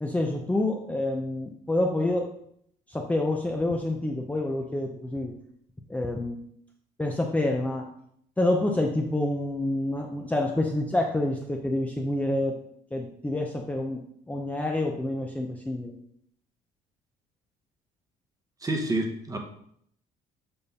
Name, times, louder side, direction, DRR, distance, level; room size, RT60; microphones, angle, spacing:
voice 1, 0.0-2.3 2.9-5.3 5.9-6.4 7.0-7.9 8.4-12.6 12.9-15.9, left 1 dB, 10° left, 1 dB, 0.6 m, -27 dB
voice 2, 18.6-19.4, right 2 dB, 20° right, 4 dB, 1.0 m, -28 dB
6.9 x 2.6 x 5.5 m, 0.68 s
cardioid pair, 110°, 17 cm